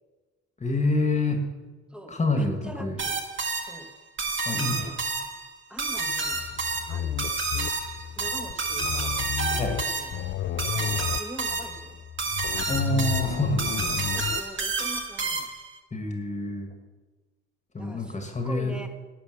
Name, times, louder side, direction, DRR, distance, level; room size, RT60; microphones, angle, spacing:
voice 1, 0.6-1.5 2.1-3.0 4.5-5.0 9.6-9.8 12.7-14.1 15.9-16.7 17.7-18.7, left 2 dB, 25° left, 4 dB, 1.9 m, -27 dB
voice 2, 1.9-3.2 3.6-3.9 4.6-4.9 5.7-6.4 6.9-7.4 8.2-9.1 9.5-10.1 10.7-11.9 14.1-15.5 17.8-18.9, equal, 5° right, 5 dB, 1.7 m, -42 dB
sound 1, 3.0-15.7, right 4 dB, 40° right, 1.8 m, -30 dB
sound 2, 6.3-14.4, left 11 dB, 45° left, 0.4 m, -33 dB
11.5 x 8.5 x 6.6 m, 1.2 s
cardioid pair, 90°, 30 cm